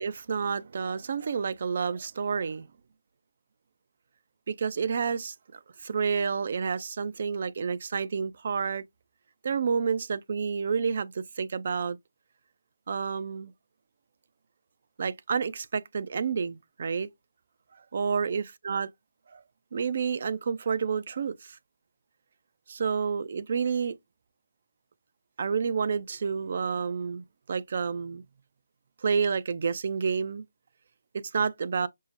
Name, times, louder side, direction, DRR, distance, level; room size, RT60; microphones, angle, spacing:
voice 1, 0.0-2.7 4.5-8.8 9.4-12.0 12.9-13.5 15.0-17.1 17.9-18.9 19.3-19.4 19.7-21.6 22.7-24.0 25.4-28.2 29.0-30.4 31.1-31.9, right 6 dB, 50° right, 0.4 m, -29 dB
5.4 x 2.0 x 2.5 m
figure-of-eight pair, 155°, 0 cm